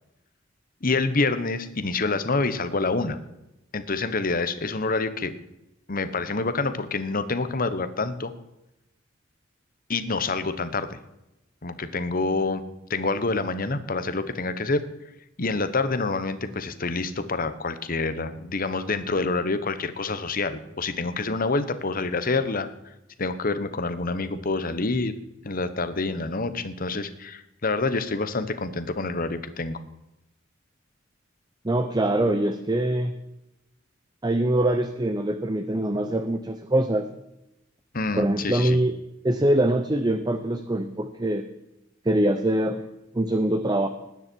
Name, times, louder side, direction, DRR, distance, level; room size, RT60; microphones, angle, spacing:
voice 1, 0.8-3.2 3.7-5.4 5.9-8.3 9.9-11.0 11.6-12.6 12.9-14.8 15.4-22.7 23.2-25.1 25.4-29.8 37.9-38.8, left 3 dB, 45° left, 12 dB, 1.1 m, -27 dB
voice 2, 31.6-33.1 34.2-37.1 38.2-39.0 39.2-41.4 42.0-42.8 43.1-43.9, right 1 dB, 20° right, 8 dB, 0.8 m, -23 dB
19.5 x 9.8 x 4.6 m, 0.89 s
head